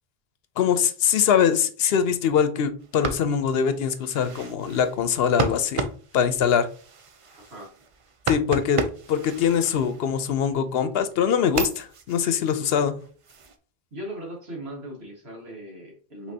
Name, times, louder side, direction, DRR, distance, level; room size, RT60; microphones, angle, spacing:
voice 1, 0.6-5.9 6.1-6.7 8.3-8.8 9.1-13.0, left 8 dB, 75° left, 11 dB, 0.8 m, -23 dB
sound 1, 2.8-10.4 10.9-13.6, right 4 dB, 45° right, 0.4 m, -34 dB
voice 2, 13.9-16.3, right 1 dB, 85° right, -1 dB, 1.8 m, -38 dB
5.2 x 3.3 x 2.7 m, 0.42 s
omnidirectional pair, 1.0 m